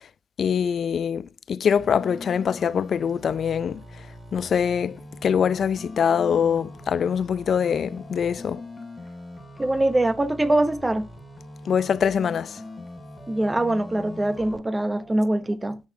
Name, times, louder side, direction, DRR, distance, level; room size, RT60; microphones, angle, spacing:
voice 1, 0.4-3.8 4.3-8.6 11.7-12.6, left 7 dB, 55° left, 0.4 m, -24 dB
sound 1, 1.8-14.6, left 1 dB, 20° left, 2.7 m, -42 dB
voice 2, 9.6-11.0 13.3-15.8, right 1 dB, 15° right, 0.9 m, -23 dB
8.1 x 6.3 x 2.8 m
cardioid pair, 90°, 0 cm